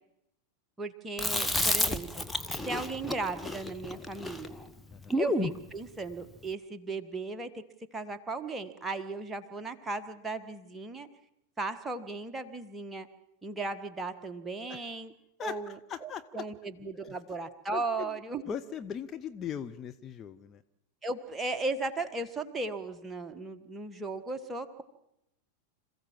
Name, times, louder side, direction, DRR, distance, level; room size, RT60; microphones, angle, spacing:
voice 1, 0.8-2.2 2.6-4.5 5.2-7.6 7.9-11.1 11.6-13.1 13.4-15.1 15.4-18.4 21.0-24.8, right 3 dB, 10° right, 7 dB, 1.6 m, -36 dB
Chewing mastication, 1.2-5.6, left 1 dB, 5° left, 1.1 m, -31 dB
voice 2, 15.4-16.4 17.0-17.1 17.7-18.1 18.5-20.6, left 8 dB, 25° left, 8 dB, 0.8 m, -39 dB
27.0 x 15.5 x 7.5 m, 0.84 s
figure-of-eight pair, 90°, 0 cm